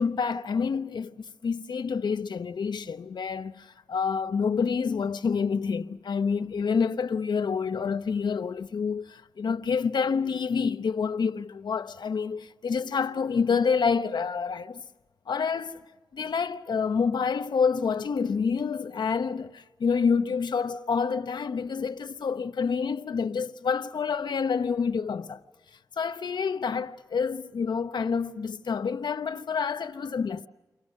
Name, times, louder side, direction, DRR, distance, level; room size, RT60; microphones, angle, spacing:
voice 1, 0.0-14.8 15.3-15.8 16.1-25.4 26.0-30.5, left 5 dB, 85° left, 0.9 m, -28 dB
29.5 x 25.0 x 6.4 m
wide cardioid pair, 105°, 7 cm